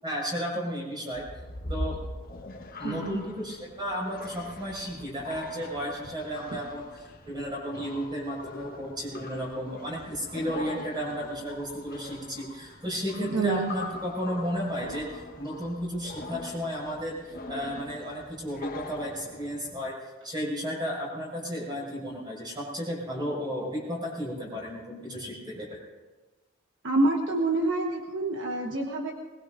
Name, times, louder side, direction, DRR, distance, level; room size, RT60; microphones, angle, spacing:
voice 1, 0.0-1.2 1.7-2.0 2.8-19.9 20.2-25.8, equal, 20° right, -4 dB, 6.2 m, -33 dB
sound 1, 1.1-19.8, left 2 dB, 40° left, 1.4 m, -42 dB
voice 2, 2.8-3.2 6.5-6.6 13.2-13.7 26.8-29.1, right 2 dB, 60° right, 0 dB, 1.4 m, -27 dB
21.5 x 21.0 x 2.7 m, 1.3 s
head